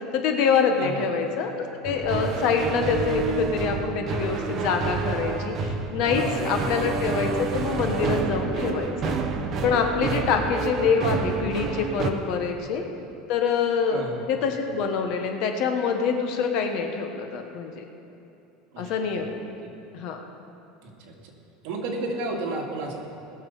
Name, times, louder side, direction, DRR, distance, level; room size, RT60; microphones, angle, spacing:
voice 1, 0.1-9.2 9.6-12.8 13.3-17.8 18.8-19.5 19.9-20.2, left 6 dB, 50° left, 4 dB, 1.2 m, -25 dB
sound 1, 1.8-12.1, right 5 dB, 30° right, 0.9 m, -29 dB
voice 2, 6.1-6.7 10.3-10.5 13.9-14.2 18.7-19.0 19.6-19.7 20.8-21.1 21.6-23.0, right 2 dB, 60° right, -1 dB, 2.4 m, -32 dB
20.0 x 7.2 x 5.5 m, 2.8 s
supercardioid pair, 165°, 0 cm